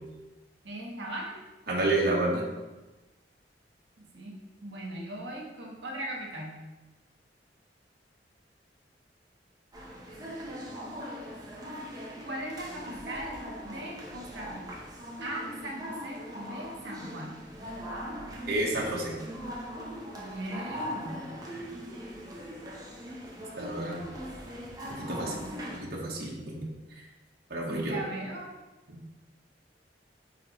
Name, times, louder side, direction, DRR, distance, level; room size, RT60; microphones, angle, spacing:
voice 1, 0.6-1.3 4.0-4.3 4.6-6.6 12.2-14.7 15.2-17.4 20.1-21.3 24.8-25.6 27.7-28.5, right 1 dB, 80° right, -1 dB, 1.4 m, -39 dB
voice 2, 1.7-2.5 18.5-19.1 23.6-24.0 24.9-25.3 25.7-26.7 27.5-28.0 28.9-29.0, right 2 dB, 60° right, -3 dB, 1.4 m, -30 dB
sound 1, 9.7-25.8, equal, 20° right, 1.0 m, -40 dB
9.4 x 3.9 x 3.2 m, 1.1 s
head